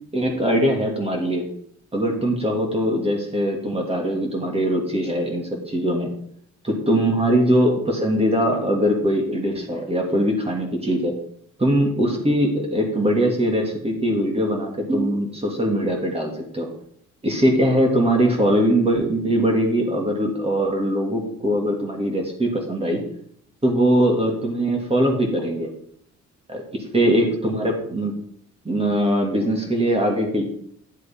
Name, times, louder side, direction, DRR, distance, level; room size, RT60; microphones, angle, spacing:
voice 1, 0.1-1.4 1.9-6.1 6.6-11.1 11.6-16.7 17.2-23.0 23.6-25.7 26.5-28.1 28.6-30.4, equal, 20° right, 1 dB, 2.7 m, -21 dB
11.0 x 7.5 x 3.8 m, 0.65 s
cardioid pair, 90°, 30 cm